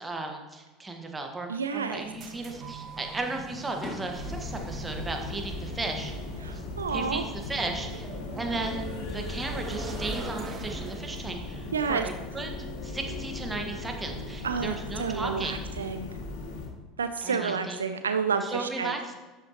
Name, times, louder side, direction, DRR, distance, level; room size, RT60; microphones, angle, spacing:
voice 1, 0.0-6.1 6.5-6.6 6.9-8.1 8.4-15.6 17.2-17.8 18.4-19.1, right 2 dB, 15° right, 3 dB, 1.5 m, -35 dB
voice 2, 1.5-2.0 6.4-7.2 11.7-12.1 14.4-16.1 17.0-18.9, right 5 dB, 75° right, 9 dB, 0.4 m, -30 dB
sound 1, 1.9-11.2, right 4 dB, 35° right, 1.3 m, -43 dB
Fireworks, 2.1-2.7 3.2-6.3 6.6-7.2 8.7-9.5, left 3 dB, 30° left, 2.0 m, -47 dB
sound 2, 4.1-16.7, left 2 dB, 65° left, 1.9 m, -37 dB
12.5 x 8.0 x 3.0 m, 1.3 s
figure-of-eight pair, 70°, 0 cm